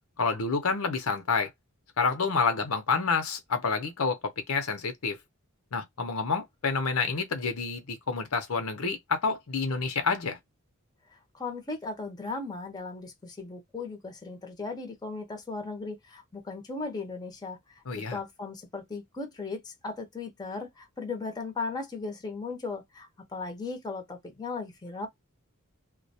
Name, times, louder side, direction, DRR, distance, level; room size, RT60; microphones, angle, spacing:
voice 1, 0.2-1.5 2.0-5.2 5.7-10.4 17.9-18.2, left 4 dB, 80° left, 0.7 m, -28 dB
voice 2, 11.1-17.8 18.1-25.1, left 3 dB, 20° left, 0.7 m, -37 dB
2.3 x 2.2 x 2.6 m
head